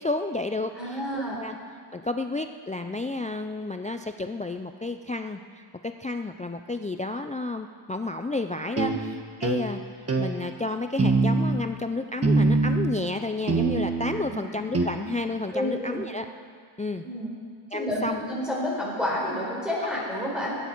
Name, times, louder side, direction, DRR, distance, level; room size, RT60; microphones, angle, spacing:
voice 1, 0.0-1.0 1.3-1.6 1.9-8.9 9.4-16.3 16.8-17.0 17.7-18.2 19.8-19.9, left 2 dB, 15° left, 7 dB, 0.3 m, -31 dB
voice 2, 0.7-1.4 8.8-8.9 14.3-14.4 15.5-16.1 17.0-17.4 17.7-20.6, left 1 dB, ahead, -5 dB, 4.6 m, -30 dB
sound 1, 8.8-9.0 9.4-9.6 10.1-10.3 11.0-11.6 12.2-12.9 13.5-14.2 14.7-14.9, right 3 dB, 30° right, 1.3 m, -23 dB
22.0 x 9.4 x 4.5 m, 2.1 s
wide cardioid pair, 115°, 49 cm